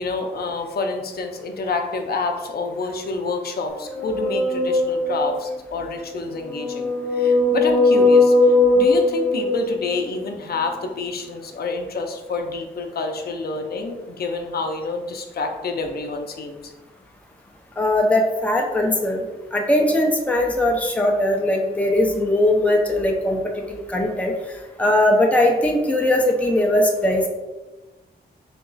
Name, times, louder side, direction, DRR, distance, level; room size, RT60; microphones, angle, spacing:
voice 1, 0.0-16.7, left 3 dB, 65° left, 4 dB, 0.5 m, -28 dB
sound 1, 3.9-5.5 6.3-10.2, left 2 dB, 20° right, 0.8 m, -19 dB
voice 2, 17.8-19.2 19.5-24.3 24.8-27.3, left 1 dB, 10° left, 1 dB, 0.4 m, -20 dB
3.9 x 2.3 x 3.8 m, 1.1 s
wide cardioid pair, 155°, 18 cm